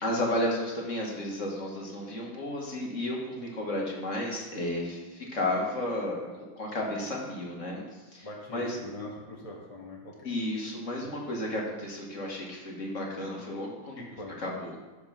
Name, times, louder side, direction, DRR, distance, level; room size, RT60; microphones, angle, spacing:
voice 1, 0.0-6.2 6.6-8.8 10.2-14.0 14.4-14.8, left 1 dB, 40° left, -2 dB, 2.0 m, -33 dB
voice 2, 8.2-10.1 14.0-14.3, left 2 dB, 20° left, -1 dB, 1.0 m, -42 dB
12.5 x 4.9 x 5.9 m, 1.2 s
omnidirectional pair, 2.2 m